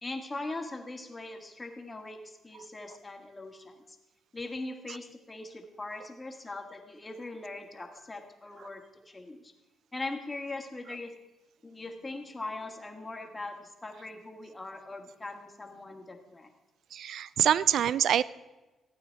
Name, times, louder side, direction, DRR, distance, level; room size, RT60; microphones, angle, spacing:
voice 1, 0.0-3.8 4.3-9.5 9.9-11.1 11.6-16.5, left 2 dB, 20° left, 4 dB, 1.6 m, -41 dB
voice 2, 16.9-18.2, right 9 dB, 70° right, 19 dB, 0.3 m, -25 dB
15.0 x 8.9 x 4.6 m, 1.1 s
cardioid pair, 90°, 0 cm